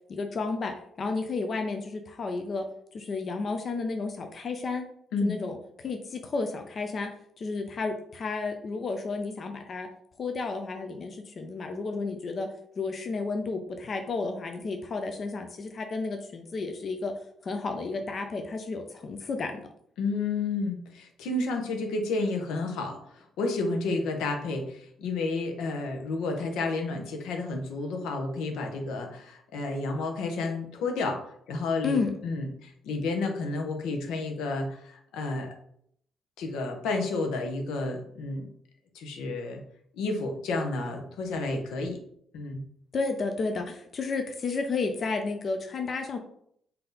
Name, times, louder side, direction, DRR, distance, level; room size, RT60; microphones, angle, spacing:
voice 1, 0.1-2.7 2.9-4.9 5.2-7.1 7.4-9.9 10.2-12.5 12.8-17.1 17.4-19.6 31.8-32.1 42.9-46.2, left 4 dB, 45° left, 5 dB, 0.5 m, -32 dB
voice 2, 20.0-35.5 36.4-38.5 38.9-39.6 39.9-42.0 42.3-42.6, left 3 dB, 90° left, 3 dB, 0.8 m, -31 dB
3.8 x 2.8 x 3.9 m, 0.68 s
cardioid pair, 90°, 0 cm